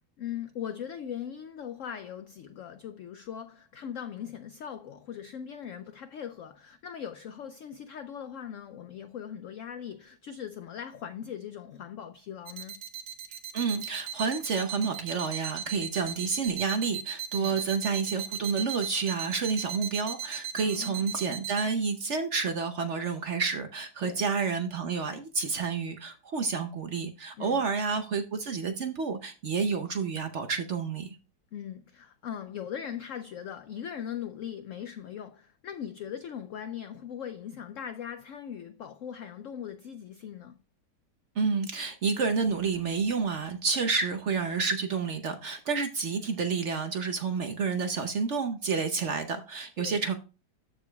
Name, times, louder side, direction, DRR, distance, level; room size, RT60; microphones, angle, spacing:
voice 1, 0.2-12.7 17.3-17.6 20.6-21.2 24.0-24.2 27.4-27.7 31.5-40.6 49.8-50.0, left 9 dB, 80° left, 0.7 m, -40 dB
sound 1, 12.5-21.6, right 9 dB, 80° right, 1.5 m, -36 dB
voice 2, 13.5-31.2 41.4-50.1, right 5 dB, 55° right, 0.8 m, -29 dB
13.5 x 4.9 x 2.3 m
omnidirectional pair, 1.9 m